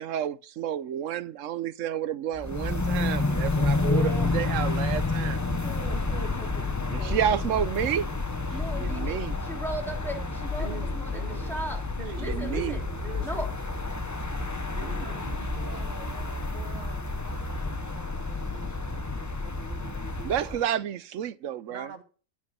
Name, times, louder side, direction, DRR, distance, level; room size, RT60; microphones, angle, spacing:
voice 1, 0.0-5.4 6.9-8.1 8.8-9.3 12.2-12.8 20.2-21.9, right 10 dB, 70° right, 1.1 m, -30 dB
sound 1, 2.3-20.6, left 3 dB, 15° left, 0.7 m, -30 dB
voice 2, 3.8-4.3 5.6-7.6 8.5-11.8 12.2-12.8 13.2-13.5 14.1-14.2 14.8-15.2, right 1 dB, ahead, 3.3 m, -37 dB
voice 3, 10.5-13.5 14.5-18.7 19.1-20.9 21.7-22.0, right 5 dB, 35° right, 1.7 m, -45 dB
15.0 x 5.1 x 6.8 m
omnidirectional pair, 1.4 m